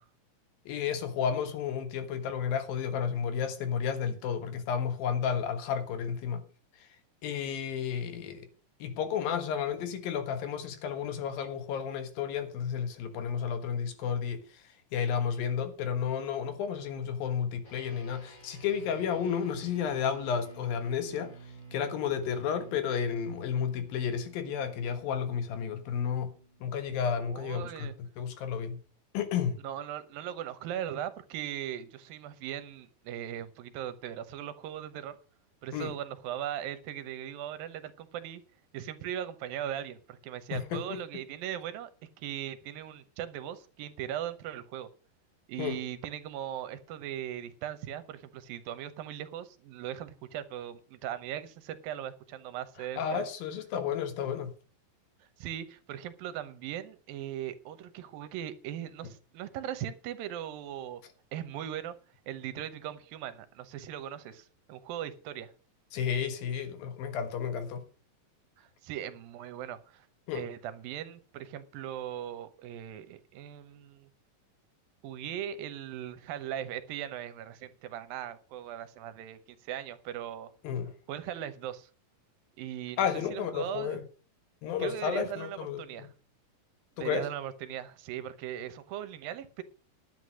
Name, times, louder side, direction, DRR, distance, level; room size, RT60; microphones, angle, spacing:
voice 1, 0.7-6.4 7.2-8.5 8.8-14.4 14.9-21.3 21.7-26.3 26.6-28.8 29.1-29.6 35.7-35.9 40.5-41.0 45.6-45.8 53.0-54.5 65.9-67.8 70.3-70.4 80.6-80.9 83.0-84.0 84.6-86.1 87.0-87.3, left 7 dB, 80° left, 3.3 m, -32 dB
sound 1, 17.6-27.3, right 4 dB, 40° left, 5.4 m, -51 dB
voice 2, 27.2-27.9 29.6-35.2 35.6-38.4 38.7-41.9 42.2-44.9 45.5-53.3 55.2-61.0 61.3-61.9 62.3-65.5 68.6-70.1 70.3-74.1 75.0-80.5 81.1-81.9 82.6-84.0 84.8-86.1 87.0-89.6, right 11 dB, 80° right, 2.7 m, -39 dB
11.0 x 8.1 x 6.3 m
omnidirectional pair, 4.1 m